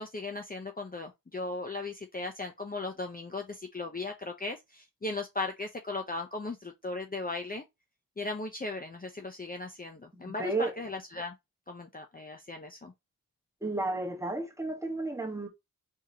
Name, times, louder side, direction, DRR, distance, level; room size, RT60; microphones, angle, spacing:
voice 1, 0.0-7.6 8.2-11.3 11.7-12.9, left 3 dB, 25° left, 0.8 m, -37 dB
voice 2, 10.2-10.7 13.6-15.5, right 2 dB, 10° right, 1.5 m, -33 dB
4.7 x 3.6 x 2.9 m
cardioid pair, 55°, 36 cm